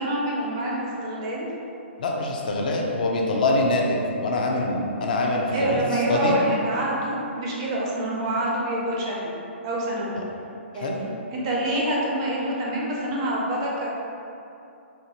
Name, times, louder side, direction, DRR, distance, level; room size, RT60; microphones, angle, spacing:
voice 1, 0.0-1.5 5.5-9.3 9.6-10.2 10.7-11.0 11.3-13.9, right 1 dB, 25° right, -4 dB, 0.4 m, -26 dB
voice 2, 2.0-6.4 10.8-10.9, left 2 dB, 40° left, 0 dB, 0.4 m, -24 dB
4.5 x 2.5 x 2.8 m, 2.8 s
hypercardioid pair, 170°, 7 cm